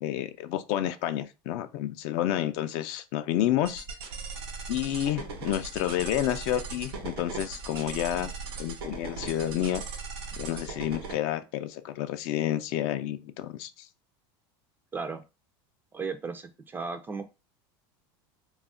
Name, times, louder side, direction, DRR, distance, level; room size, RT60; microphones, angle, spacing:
voice 1, 0.0-3.8 4.7-8.3 8.6-9.8 10.4-13.9, left 12 dB, 60° left, 0.4 m, -30 dB
sound 1, 3.7-11.1, right 4 dB, 90° right, 0.8 m, -38 dB
voice 2, 14.9-15.2 15.9-17.2, right 4 dB, 15° right, 0.3 m, -35 dB
2.3 x 2.0 x 3.6 m
supercardioid pair, 130°, 13 cm